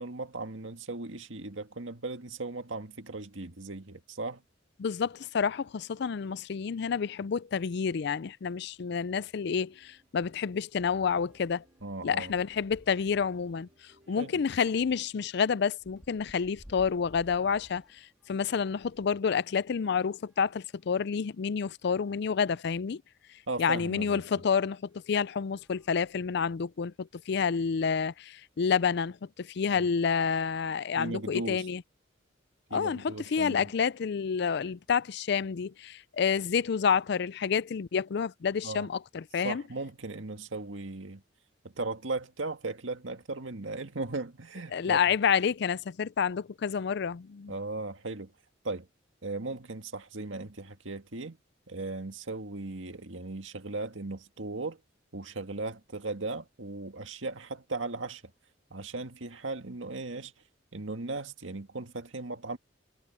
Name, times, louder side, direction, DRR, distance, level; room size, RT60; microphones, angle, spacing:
voice 1, 0.0-4.4 11.8-12.4 14.2-14.4 23.5-24.2 29.7-29.9 31.0-31.7 32.7-33.7 38.6-38.9 39.4-41.2 41.6-45.0 47.5-48.3 48.6-48.9 49.2-51.4 51.7-54.8 55.1-58.2 58.7-60.3 60.7-62.6, right 3 dB, 85° right, 1.9 m, -37 dB
voice 2, 4.8-11.6 12.0-13.7 14.1-18.0 18.3-23.0 23.6-31.8 32.7-39.6 44.7-47.5, left 6 dB, 60° left, 0.4 m, -29 dB
sound 1, 8.7-8.9 9.3-9.4 9.7-19.2 19.9-21.2 21.9-22.0 22.3-22.4 24.1-24.2 24.8-25.0 25.5-26.7, equal, 5° right, 2.8 m, -59 dB
sound 2, 9.2-15.4, equal, 35° right, 4.6 m, -64 dB
head